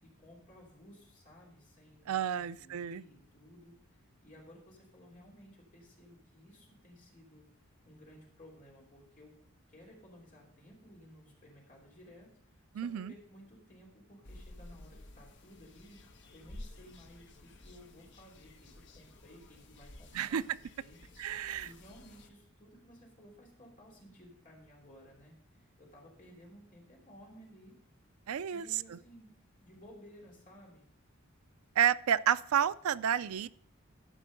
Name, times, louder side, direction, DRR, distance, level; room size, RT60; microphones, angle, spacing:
voice 1, 0.0-7.4 7.8-9.3 9.7-16.0 16.3-20.4 20.8-21.0 21.3-27.8 28.5-29.3 29.6-30.9, equal, 35° left, -3 dB, 3.1 m, -57 dB
voice 2, 2.1-3.0 12.7-13.1 20.1-20.6 21.2-21.7 28.3-29.0 31.8-33.5, right 9 dB, 85° right, 15 dB, 0.4 m, -30 dB
sound 1, 14.2-22.3, left 1 dB, 55° left, 0.9 m, -53 dB
13.0 x 5.4 x 5.1 m, 0.65 s
head